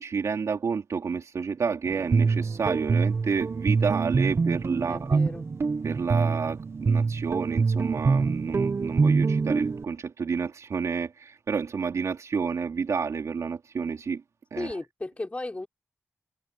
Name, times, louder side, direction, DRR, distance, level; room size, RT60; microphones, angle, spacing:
voice 1, 0.0-5.2 5.8-14.2 14.5-14.7, right 5 dB, 70° right, 3.8 m, -30 dB
Guitar, 1.9-9.8, right 4 dB, 50° right, 1.1 m, -25 dB
voice 2, 4.9-5.5 14.6-15.7, left 2 dB, 25° left, 3.7 m, -35 dB
wide cardioid pair, 110°, 6 cm